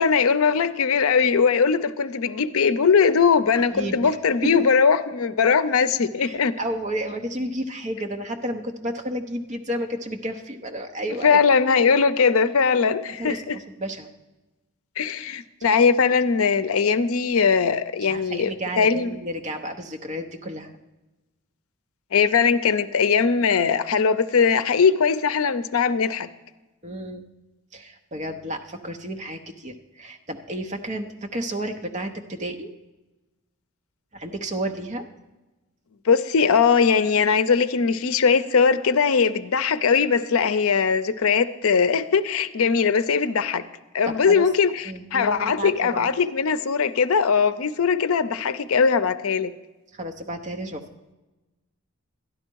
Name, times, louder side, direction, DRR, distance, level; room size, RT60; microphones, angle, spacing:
voice 1, 0.0-6.5 11.2-13.6 15.0-19.2 22.1-26.3 36.1-43.6 43.9-49.5, left 5 dB, 75° left, 13 dB, 0.5 m, -20 dB
voice 2, 3.7-4.2 4.4-4.7 6.2-11.4 13.2-14.1 18.1-20.7 26.8-27.2 27.7-32.7 34.1-35.0 44.1-44.4 44.8-46.1 49.9-50.8, right 1 dB, 30° right, 5 dB, 0.8 m, -31 dB
12.0 x 10.5 x 4.6 m, 1.1 s
head